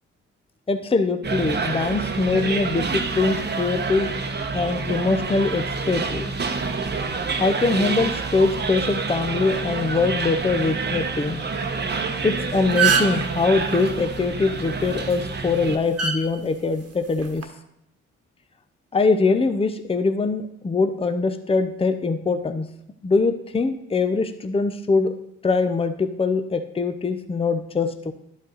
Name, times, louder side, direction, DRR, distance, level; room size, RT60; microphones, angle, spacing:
voice 1, 0.7-4.2 4.5-6.3 7.4-11.4 12.2-17.5 18.9-22.7 23.0-25.1 25.4-28.1, left 3 dB, 20° left, 8 dB, 0.7 m, -23 dB
sound 1, 1.2-15.8, right 4 dB, 35° right, 1.0 m, -28 dB
sound 2, 12.2-12.3 12.6-13.3 14.9-15.1 16.0-16.2 17.2-17.4, right 7 dB, 55° right, 1.3 m, -20 dB
11.0 x 5.2 x 4.0 m, 0.76 s
supercardioid pair, 55°, 30 cm